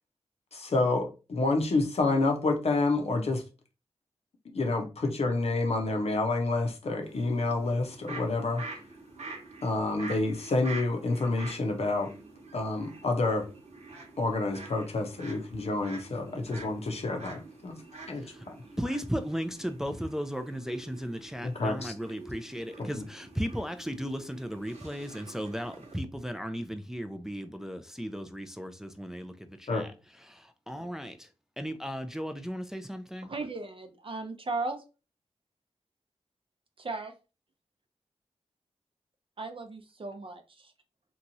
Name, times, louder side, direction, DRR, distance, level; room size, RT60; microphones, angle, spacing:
voice 1, 0.5-3.4 4.5-8.6 9.6-12.1 12.5-13.5 14.2-17.8 18.1-18.5 21.4-21.9 22.8-23.1 29.7-29.9, left 2 dB, 65° left, 0.7 m, -28 dB
sound 1, 7.0-26.0, right 3 dB, 70° right, 0.9 m, -47 dB
voice 2, 18.8-29.3 29.6-29.9 30.3-31.3 31.6-33.3, equal, 5° right, 0.4 m, -36 dB
voice 3, 33.2-34.8 36.8-37.1 39.4-40.7, right 3 dB, 50° right, 0.6 m, -36 dB
3.0 x 2.3 x 2.6 m
cardioid pair, 50°, 12 cm